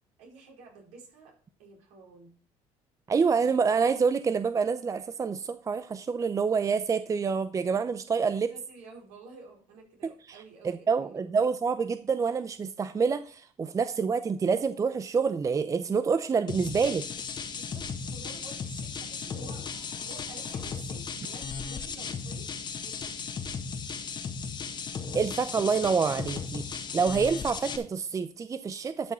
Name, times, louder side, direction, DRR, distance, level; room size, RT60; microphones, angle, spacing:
voice 1, 0.2-1.3 1.6-2.3 8.5-11.3 17.5-19.6 20.0-22.5 22.8-23.3, right 3 dB, 75° right, 0 dB, 4.6 m, -50 dB
voice 2, 3.1-8.5 10.6-17.0 25.1-29.1, right 5 dB, 25° right, 12 dB, 0.6 m, -27 dB
sound 1, 16.5-27.8, left 5 dB, 40° left, 1.6 m, -36 dB
12.0 x 6.0 x 4.4 m, 0.41 s
supercardioid pair, 95°, 12 cm